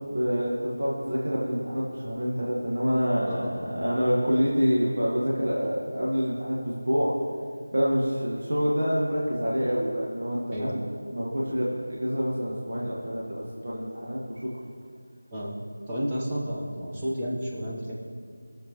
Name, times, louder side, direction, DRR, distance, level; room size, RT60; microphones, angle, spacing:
voice 1, 0.0-7.1 7.7-10.8 11.1-14.5, equal, 60° right, -5 dB, 1.6 m, -27 dB
voice 2, 15.9-17.9, equal, 15° right, -6 dB, 1.2 m, -31 dB
17.5 x 6.8 x 3.2 m, 2.2 s
figure-of-eight pair, 170°, 0 cm